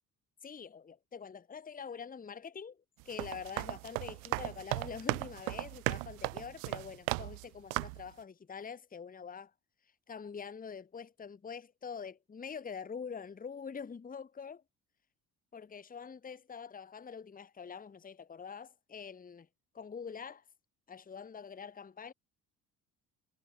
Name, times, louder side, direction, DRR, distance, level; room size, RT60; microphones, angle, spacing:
voice 1, 0.4-9.5 10.1-14.6 15.5-19.5 19.7-20.4 20.9-22.1, left 6 dB, 20° left, 1.1 m, -45 dB
sound 1, 3.0-7.4 7.7-8.1, right 34 dB, 60° right, 0.5 m, -36 dB
figure-of-eight pair, 45°, 47 cm